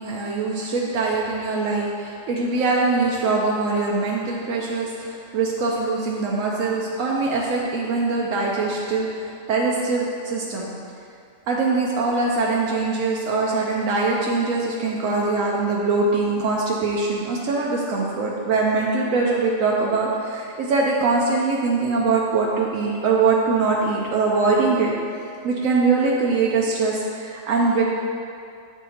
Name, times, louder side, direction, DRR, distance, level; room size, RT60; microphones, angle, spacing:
voice 1, 0.0-10.7 11.5-24.9 25.4-27.8, right 3 dB, 90° right, -3 dB, 1.1 m, -22 dB
8.4 x 3.6 x 4.2 m, 2.5 s
omnidirectional pair, 1.3 m